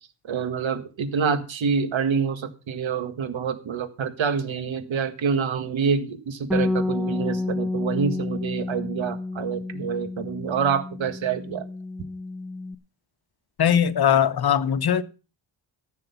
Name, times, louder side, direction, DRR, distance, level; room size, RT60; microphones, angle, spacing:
voice 1, 0.2-11.6, right 6 dB, 90° right, 10 dB, 1.7 m, -27 dB
Bass guitar, 6.5-12.8, left 2 dB, ahead, 0.9 m, -30 dB
voice 2, 13.6-15.0, left 9 dB, 55° left, 15 dB, 0.9 m, -20 dB
14.5 x 6.7 x 6.9 m, 0.34 s
wide cardioid pair, 140°, 45 cm